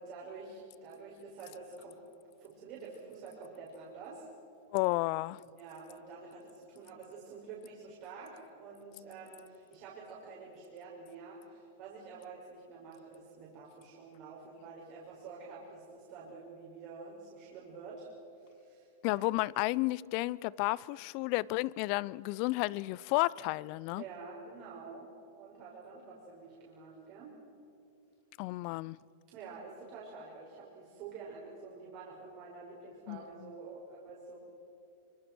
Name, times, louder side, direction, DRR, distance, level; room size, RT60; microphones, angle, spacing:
voice 1, 0.0-2.0 2.4-4.3 5.6-18.1 18.4-19.3 23.9-27.4 29.3-34.4, right 4 dB, 50° right, 5.6 m, -48 dB
voice 2, 4.7-5.4 19.0-24.0 28.4-29.0 33.1-33.5, left 20 dB, 55° left, 0.5 m, -32 dB
25.5 x 24.0 x 6.2 m
hypercardioid pair, 115°, 0 cm